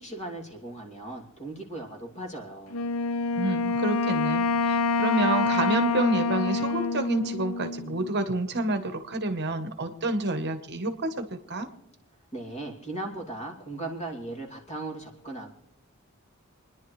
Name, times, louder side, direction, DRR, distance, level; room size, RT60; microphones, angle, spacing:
voice 1, 0.0-2.8 12.3-15.5, right 2 dB, 30° left, 0 dB, 2.6 m, -37 dB
Wind instrument woodwind instrument, 2.7-8.2, left 3 dB, 70° left, 0.7 m, -26 dB
voice 2, 3.4-11.7, right 2 dB, 50° right, 8 dB, 1.1 m, -29 dB
28.0 x 10.5 x 3.2 m, 0.79 s
head